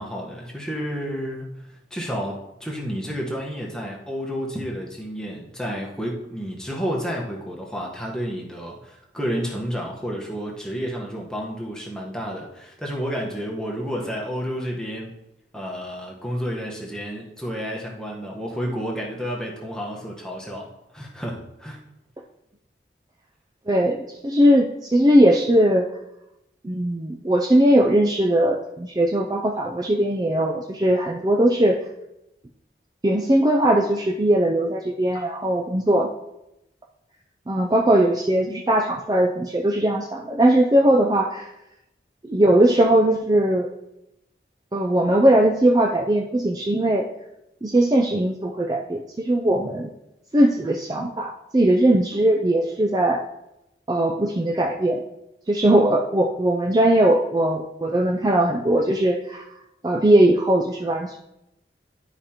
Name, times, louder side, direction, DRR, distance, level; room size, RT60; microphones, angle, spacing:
voice 1, 0.0-1.5 1.9-15.1 15.5-21.8, equal, 5° left, -2 dB, 1.1 m, -30 dB
voice 2, 23.7-25.9 26.6-31.8 33.0-36.1 37.5-41.5 42.2-43.7 44.7-47.1 47.6-49.9 50.3-53.2 53.9-55.0 55.5-59.4 59.8-61.2, right 1 dB, 20° right, 0 dB, 0.4 m, -19 dB
11.5 x 4.9 x 2.9 m, 0.87 s
head